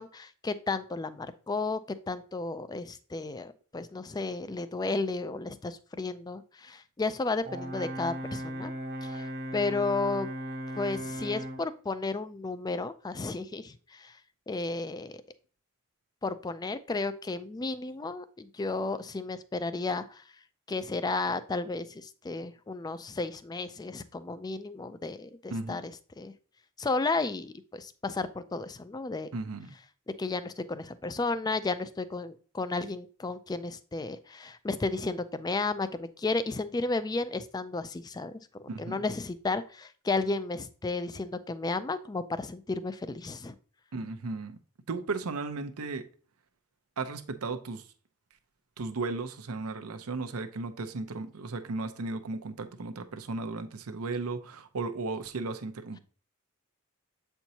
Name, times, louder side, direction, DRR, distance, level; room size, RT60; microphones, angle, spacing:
voice 1, 0.0-8.7 9.0-10.3 10.7-14.2 14.5-15.2 16.2-20.2 20.7-25.9 26.2-26.3 26.8-29.3 30.1-38.4 38.8-43.6, left 3 dB, 20° left, 0.3 m, -33 dB
Brass instrument, 7.4-11.7, equal, 45° right, 0.8 m, -37 dB
voice 2, 25.5-25.8 29.3-29.7 38.7-39.0 43.9-44.6 44.9-46.0 47.0-47.8 48.8-56.0, right 3 dB, 85° right, 0.7 m, -35 dB
7.8 x 4.5 x 2.7 m
head